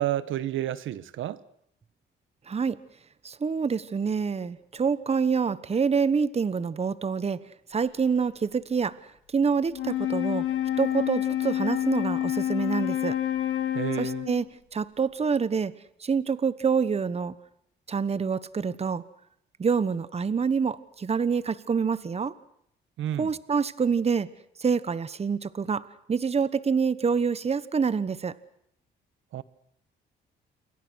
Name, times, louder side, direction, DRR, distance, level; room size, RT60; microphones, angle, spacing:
voice 1, 0.0-1.4 13.7-14.3 23.0-23.3 29.3-29.4, right 12 dB, 80° right, 1.4 m, -30 dB
voice 2, 2.5-2.8 3.2-7.4 7.7-9.0 9.3-10.4 10.8-13.1 14.0-14.5 14.7-15.7 16.0-17.3 17.9-19.0 19.6-22.3 23.2-24.3 24.6-28.3, right 5 dB, 30° right, 1.2 m, -26 dB
Wind instrument woodwind instrument, 9.7-14.5, left 12 dB, 80° left, 3.4 m, -28 dB
28.5 x 23.0 x 6.4 m
cardioid pair, 90°, 20 cm